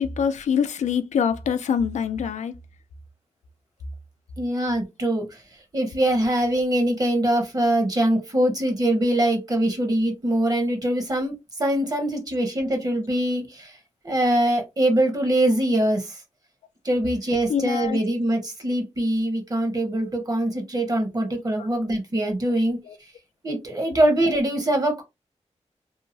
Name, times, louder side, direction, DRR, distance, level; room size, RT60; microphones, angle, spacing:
voice 1, 0.0-2.5 17.5-18.0 21.6-21.7 22.8-22.9, left 7 dB, 90° left, 0.4 m, -24 dB
voice 2, 4.4-5.4 5.7-11.3 11.6-13.8 14.0-16.2 16.8-22.8 23.4-25.0, right 1 dB, 30° right, 1.0 m, -23 dB
2.8 x 2.3 x 2.6 m
wide cardioid pair, 115°, 12 cm